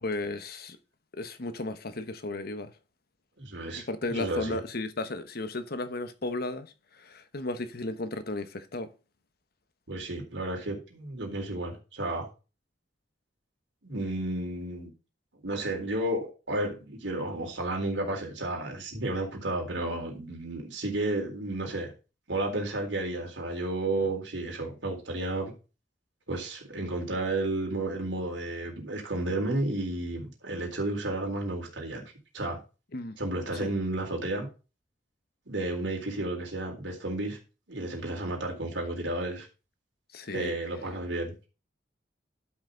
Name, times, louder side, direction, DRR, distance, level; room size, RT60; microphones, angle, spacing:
voice 1, 0.0-0.8 1.1-2.7 3.7-8.9 32.9-33.2 33.5-33.7 40.1-40.5, left 2 dB, 55° left, 1.1 m, -34 dB
voice 2, 3.4-4.6 9.9-12.3 13.8-14.9 15.4-21.9 22.3-25.5 26.3-32.0 32.3-32.6 33.2-34.5 35.5-37.4 37.7-39.5 40.3-41.5, right 2 dB, 90° right, 4.0 m, -32 dB
12.0 x 6.0 x 3.9 m
head